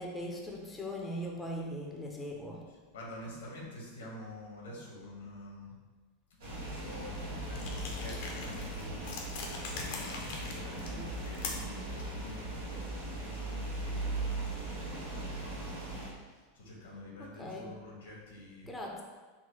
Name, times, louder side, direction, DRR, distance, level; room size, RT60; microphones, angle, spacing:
voice 1, 0.0-2.6 17.2-17.7 18.7-19.0, equal, 10° left, -1 dB, 0.7 m, -40 dB
voice 2, 2.7-5.8 6.4-9.0 9.8-15.7 16.0-18.7, left 1 dB, 80° left, -2 dB, 1.2 m, -48 dB
sound 1, 6.4-16.1, right 2 dB, 80° right, 1.4 m, -39 dB
sound 2, 7.5-11.8, left 4 dB, 65° left, 0.8 m, -42 dB
4.1 x 2.2 x 4.4 m, 1.3 s
hypercardioid pair, 100°, 0 cm